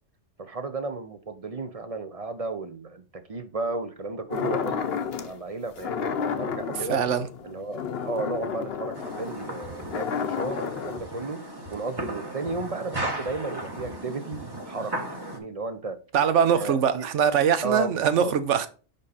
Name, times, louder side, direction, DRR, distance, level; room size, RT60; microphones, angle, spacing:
voice 1, 0.4-7.0 7.4-11.4 11.7-14.4 14.7-16.0 16.5-17.1 17.6-18.3, right 3 dB, 40° right, 0.6 m, -34 dB
sound 1, 4.3-5.3 5.8-11.0, left 7 dB, 60° left, 0.9 m, -31 dB
voice 2, 6.9-7.3 16.1-18.7, right 8 dB, 80° right, 1.0 m, -22 dB
sound 2, 8.9-15.4, right 1 dB, 20° right, 1.1 m, -36 dB
5.3 x 5.2 x 4.1 m
omnidirectional pair, 1.2 m